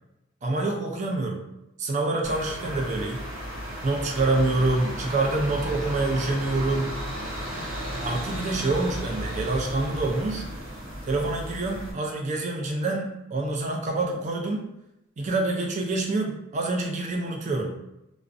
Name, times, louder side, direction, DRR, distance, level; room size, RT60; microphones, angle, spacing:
voice 1, 0.4-1.4 1.8-3.2 3.8-6.9 8.0-10.4 11.1-14.6 15.2-17.8, right 2 dB, 35° right, 1 dB, 0.4 m, -26 dB
sound 1, 2.2-11.9, equal, 85° right, 0.6 m, -34 dB
2.5 x 2.0 x 2.4 m, 0.87 s
head